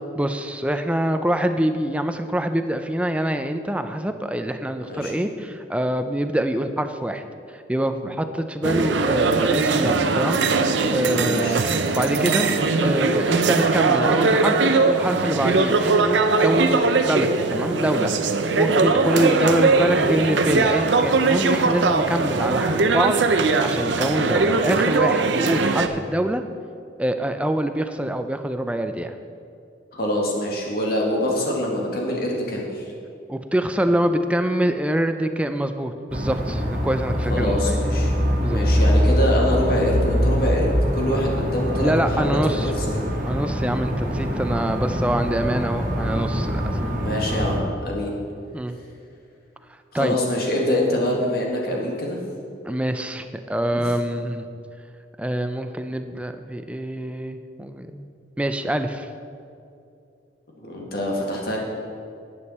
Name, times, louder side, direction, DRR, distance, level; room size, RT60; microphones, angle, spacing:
voice 1, 0.2-7.2 7.5-11.7 11.9-12.5 12.8-18.1 18.6-26.4 27.0-29.1 33.3-37.8 38.4-38.6 41.8-42.7 43.3-46.6 48.5-48.7 49.9-50.2 52.6-54.5 55.2-58.1 58.4-59.1, right 1 dB, 5° right, 8 dB, 0.4 m, -25 dB
voice 2, 4.8-5.2 11.1-11.6 19.0-19.3 29.9-32.9 37.3-38.1 38.5-41.9 42.2-43.0 47.0-48.2 49.9-52.2 53.7-53.8 60.6-61.6, left 1 dB, 55° left, -2 dB, 1.9 m, -25 dB
sound 1, 8.6-25.9, right 3 dB, 75° right, 0.6 m, -20 dB
sound 2, 36.1-47.6, equal, 45° right, 1.6 m, -23 dB
11.0 x 9.0 x 4.2 m, 2.5 s
head